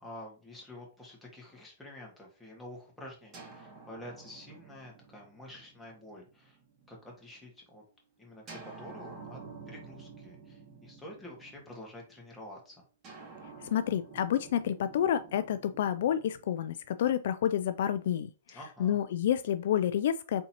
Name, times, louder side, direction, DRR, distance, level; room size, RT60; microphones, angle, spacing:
voice 1, 0.0-6.6 6.9-7.8 8.2-9.4 9.7-12.8 18.5-19.0, left 1 dB, 5° left, 1.7 m, -48 dB
sound 1, 3.3-7.1 8.5-12.0 13.0-17.2, right 4 dB, 25° right, 2.0 m, -50 dB
voice 2, 13.7-18.3 18.8-20.5, left 10 dB, 65° left, 0.3 m, -29 dB
4.3 x 3.7 x 2.9 m
hypercardioid pair, 135°, 0 cm